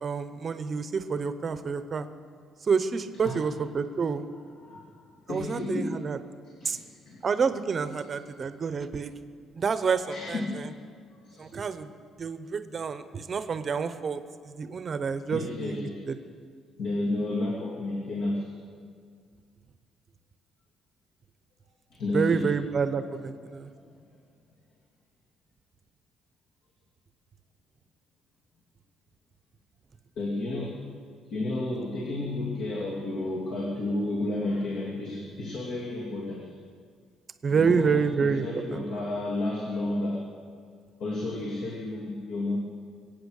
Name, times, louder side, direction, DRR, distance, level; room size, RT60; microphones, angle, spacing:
voice 1, 0.0-2.1 2.6-4.3 5.3-6.2 6.6-6.8 7.2-9.1 9.6-10.7 11.4-11.9 12.2-16.2 22.1-23.7 37.4-38.9, right 5 dB, 30° right, 11 dB, 0.7 m, -28 dB
voice 2, 4.6-6.0 6.4-7.3 10.1-10.6 11.2-11.5 15.3-16.0 16.8-18.5 21.9-22.5 30.2-30.8 31.3-36.5 37.5-40.2 41.0-42.6, left 2 dB, 65° left, -3 dB, 2.3 m, -32 dB
23.0 x 8.9 x 6.4 m, 2.1 s
cardioid pair, 170°, 0 cm